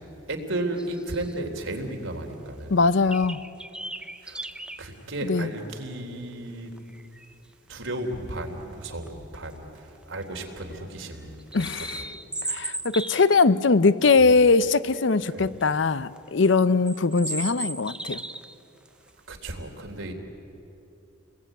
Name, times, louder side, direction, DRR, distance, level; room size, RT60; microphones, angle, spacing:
voice 1, 0.3-2.8 4.2-4.4 4.8-6.7 7.7-11.9 14.2-14.3 15.3-15.5 19.3-20.1, right 1 dB, 85° right, 2 dB, 3.6 m, -34 dB
sound 1, 0.8-1.4 1.8-1.9 2.3-2.4 3.1-4.8 5.4-5.5 6.7-7.4 8.8-9.1 9.3-9.4 9.8-10.2 10.7-13.4 14.4-14.6 14.9-15.6 16.2-16.3 16.9-18.5 18.8-19.1, right 2 dB, 5° right, 0.6 m, -36 dB
voice 2, 2.7-3.4 5.2-5.5 11.5-12.0 12.5-18.2, left 4 dB, 70° left, 16 dB, 0.7 m, -21 dB
30.0 x 21.0 x 9.2 m, 2.9 s
head